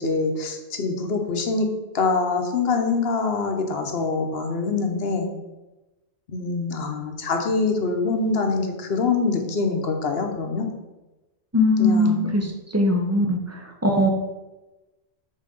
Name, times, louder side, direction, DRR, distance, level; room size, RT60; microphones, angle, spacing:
voice 1, 0.0-1.7 1.9-5.3 6.3-10.7 11.8-12.4, left 4 dB, 65° left, 4 dB, 1.1 m, -24 dB
voice 2, 11.5-14.1, left 1 dB, 15° right, 1 dB, 0.8 m, -21 dB
5.6 x 4.2 x 5.2 m, 1.1 s
omnidirectional pair, 1.1 m